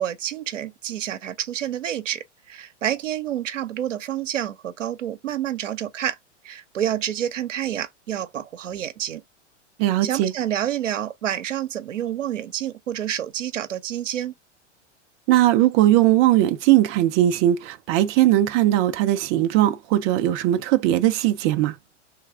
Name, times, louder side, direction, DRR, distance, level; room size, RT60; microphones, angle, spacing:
voice 1, 0.0-6.2 6.4-9.2 10.0-14.3, right 10 dB, 80° right, 0.8 m, -28 dB
voice 2, 9.8-10.3 15.3-21.8, right 14 dB, 35° right, 0.5 m, -19 dB
3.4 x 3.2 x 4.8 m
hypercardioid pair, 100°, 37 cm